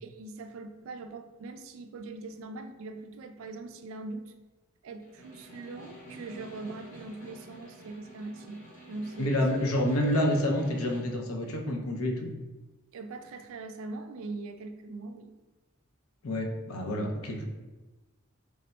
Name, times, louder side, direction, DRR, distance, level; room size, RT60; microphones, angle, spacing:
voice 1, 0.0-4.3 4.8-9.4 12.9-15.3, right 3 dB, 70° right, 7 dB, 0.3 m, -41 dB
Snare drum, 5.0-11.2, right 1 dB, 35° left, 0.8 m, -49 dB
voice 2, 9.2-12.3 16.2-17.4, left 1 dB, 90° left, 1 dB, 0.6 m, -28 dB
3.4 x 2.1 x 4.0 m, 1.2 s
head